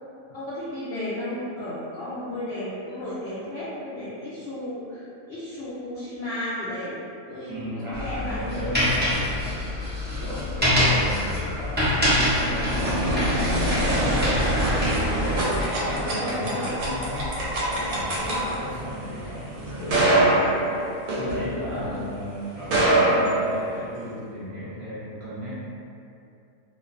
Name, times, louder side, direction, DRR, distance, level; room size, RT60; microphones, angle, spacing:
voice 1, 0.2-6.9 7.3-8.8 9.2-9.3 10.6-10.8 15.8-16.7 18.2-18.6 21.7-22.0, left 1 dB, 65° left, -11 dB, 0.6 m, -34 dB
voice 2, 7.5-9.6 10.1-14.6 15.1-20.5 21.2-25.6, left 1 dB, 55° right, -11 dB, 0.9 m, -35 dB
sound 1, 7.9-15.0, left 1 dB, 15° right, 0.4 m, -25 dB
sound 2, 11.6-22.0 22.6-24.1, right 1 dB, 80° right, 1.0 m, -24 dB
2.5 x 2.2 x 2.4 m, 2.6 s
omnidirectional pair, 1.5 m